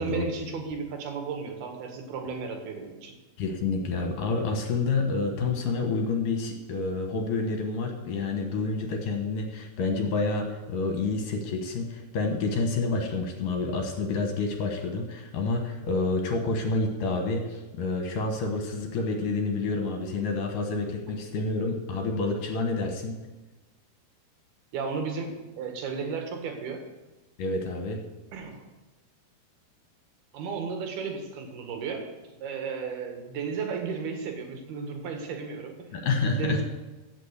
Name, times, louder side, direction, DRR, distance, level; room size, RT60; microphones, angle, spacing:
voice 1, 0.0-3.2 24.7-26.8 28.3-28.6 30.3-32.0 32.4-35.7 36.4-36.6, right 5 dB, 75° right, 3 dB, 3.5 m, -34 dB
voice 2, 3.4-23.1 27.4-28.0 35.9-36.6, left 3 dB, 65° left, 4 dB, 2.6 m, -28 dB
15.0 x 6.2 x 8.1 m, 1.1 s
omnidirectional pair, 4.6 m